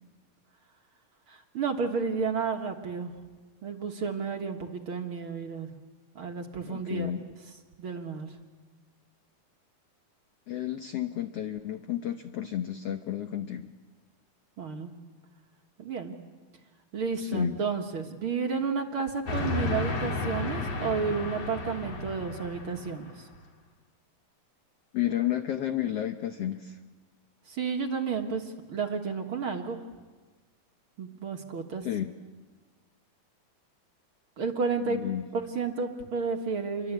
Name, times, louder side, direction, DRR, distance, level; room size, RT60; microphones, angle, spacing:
voice 1, 1.3-3.1 3.6-5.7 6.1-7.1 7.8-8.3 14.6-14.9 15.8-16.2 16.9-23.3 27.5-29.8 31.0-31.9 34.4-35.0 35.3-36.9, right 5 dB, 50° right, 3 dB, 1.8 m, -31 dB
voice 2, 6.6-7.2 10.5-13.7 17.2-17.6 24.9-26.8 31.8-32.1 34.8-35.3, left 12 dB, 90° left, 8 dB, 1.3 m, -31 dB
Train, 19.3-23.2, left 3 dB, 45° left, 3.6 m, -33 dB
28.5 x 23.0 x 8.2 m, 1.3 s
omnidirectional pair, 4.1 m